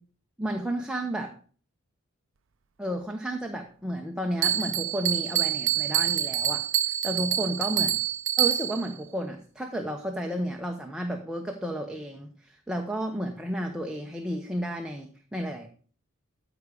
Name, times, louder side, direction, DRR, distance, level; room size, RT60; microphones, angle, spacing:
voice 1, 0.4-1.3 2.8-8.0 8.4-15.7, equal, 5° right, 3 dB, 0.9 m, -32 dB
Bell, 4.4-8.9, right 11 dB, 65° right, 0.5 m, -26 dB
13.5 x 4.9 x 6.5 m, 0.43 s
head